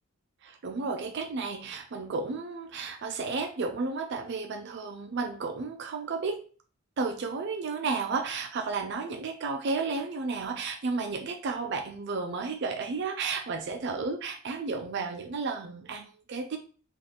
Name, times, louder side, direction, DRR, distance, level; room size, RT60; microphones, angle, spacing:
voice 1, 0.4-6.4 7.0-16.6, right 4 dB, 50° right, 4 dB, 0.4 m, -32 dB
3.9 x 2.5 x 3.2 m, 0.39 s
head